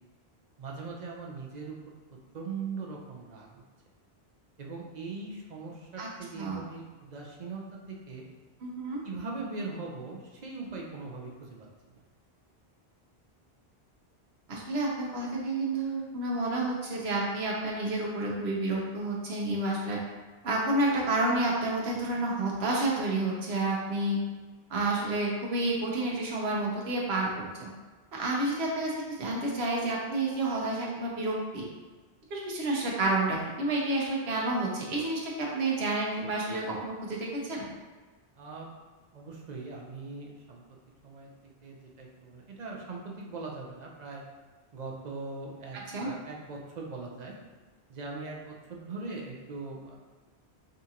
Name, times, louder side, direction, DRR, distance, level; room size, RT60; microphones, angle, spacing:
voice 1, 0.6-1.8 2.3-3.5 4.6-7.6 7.9-8.2 9.0-11.7 38.4-38.7 39.1-40.6 41.0-41.3 41.6-44.2 44.7-45.8 46.0-47.3 47.9-50.0, right 3 dB, 50° right, -1 dB, 0.6 m, -40 dB
voice 2, 8.6-9.0 14.5-20.0 20.4-24.2 24.7-27.7 28.1-31.7 32.3-37.6 45.7-46.1, right 2 dB, 75° right, -3 dB, 1.1 m, -30 dB
5.0 x 2.4 x 2.8 m, 1.3 s
omnidirectional pair, 1.1 m